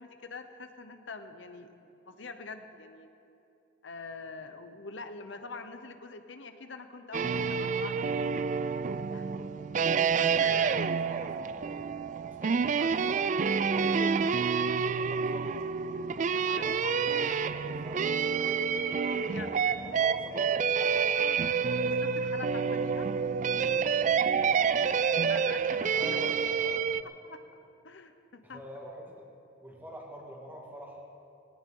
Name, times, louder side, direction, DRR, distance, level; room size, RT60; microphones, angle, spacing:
voice 1, 0.0-1.7 2.1-3.1 3.8-8.5 9.1-9.3 10.1-10.8 12.4-12.9 13.9-14.2 16.2-17.0 19.0-19.8 22.0-23.1 25.2-26.2 27.2-27.4 27.8-28.6, left 4 dB, 80° left, 8 dB, 0.9 m, -44 dB
sound 1, 7.1-27.0, right 6 dB, 40° right, 0.3 m, -28 dB
voice 2, 10.4-11.8 12.3-14.1 14.9-15.8 16.3-18.6 19.2-21.4 25.9-27.0 28.4-29.2 29.6-31.0, equal, 10° right, -2 dB, 2.1 m, -47 dB
18.5 x 18.0 x 3.9 m, 2.8 s
head